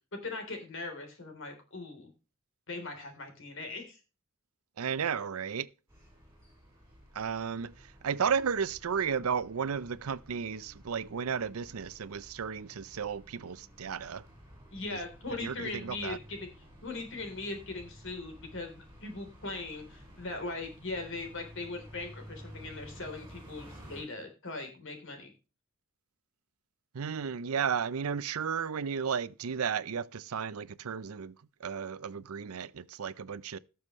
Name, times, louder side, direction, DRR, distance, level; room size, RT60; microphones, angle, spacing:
voice 1, 0.2-2.1 2.7-4.0 14.7-16.5 16.8-25.3, left 3 dB, 65° left, 3.6 m, -40 dB
voice 2, 4.8-5.7 7.1-7.7 8.0-14.2 14.9-15.0 15.3-16.2 26.9-31.3 31.6-33.6, right 6 dB, 85° right, 0.6 m, -33 dB
sound 1, 5.9-24.0, equal, 15° right, 6.0 m, -53 dB
17.5 x 6.9 x 3.1 m
head